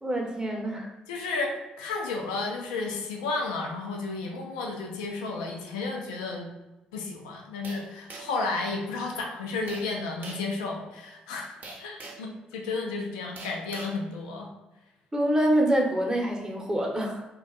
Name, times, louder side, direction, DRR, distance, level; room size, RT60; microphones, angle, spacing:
voice 1, 0.0-0.9 15.1-17.3, right 1 dB, 20° right, 1 dB, 0.8 m, -26 dB
voice 2, 1.1-6.5 6.9-14.5, left 3 dB, 80° left, 1 dB, 0.4 m, -32 dB
sound 1, 7.6-8.5 9.7-9.9 10.2-10.5 11.6-12.3 13.4-14.0, right 2 dB, 50° right, 0.6 m, -43 dB
2.5 x 2.2 x 3.8 m, 1.0 s
hypercardioid pair, 45°, 4 cm